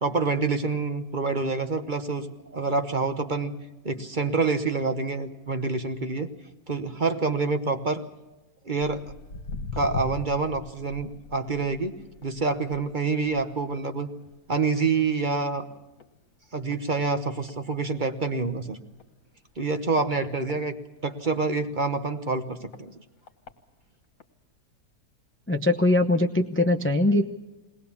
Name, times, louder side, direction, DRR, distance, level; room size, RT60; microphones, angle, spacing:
voice 1, 0.0-3.5 3.8-6.3 6.7-8.0 8.6-9.0 9.7-11.9 12.2-14.1 14.5-15.7 16.5-18.8 19.6-20.8 21.0-22.9, right 4 dB, 35° right, 7 dB, 1.0 m, -27 dB
Walk footsteps, 8.8-15.5 15.8-16.2 16.7-16.8 17.5-17.6 18.0-18.1 18.2-18.3 18.9-19.1 19.7-21.3 21.9-22.0 22.7-22.8 23.3-23.5 24.2-24.3, left 4 dB, 55° left, 1.8 m, -40 dB
voice 2, 25.5-27.2, left 1 dB, 15° left, 5 dB, 0.4 m, -21 dB
21.5 x 19.0 x 7.1 m, 1.1 s
omnidirectional pair, 1.8 m